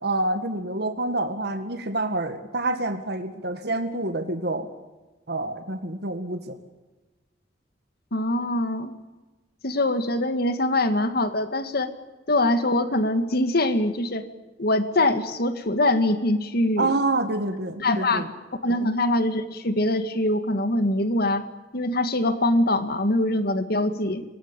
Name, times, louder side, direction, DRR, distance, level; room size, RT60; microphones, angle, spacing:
voice 1, 0.0-4.7 5.3-6.6 16.8-18.3 18.8-18.9, right 2 dB, 65° right, 7 dB, 1.9 m, -27 dB
voice 2, 8.1-8.9 9.6-11.9 12.3-14.2 14.6-16.9 17.8-18.2 18.6-21.5 21.7-24.2, left 1 dB, 60° left, 10 dB, 1.9 m, -23 dB
24.5 x 19.0 x 9.0 m, 1.2 s
head